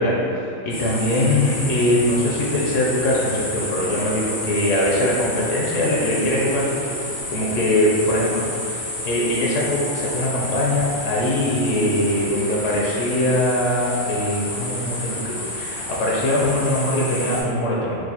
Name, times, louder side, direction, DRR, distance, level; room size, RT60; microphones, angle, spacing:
voice 1, 0.0-7.0 7.3-8.8 9.0-18.0, left 1 dB, 75° left, -4 dB, 0.9 m, -22 dB
sound 1, 0.7-17.4, left 1 dB, 90° left, 1.4 m, -30 dB
4.6 x 2.3 x 2.8 m, 2.7 s
omnidirectional pair, 1.4 m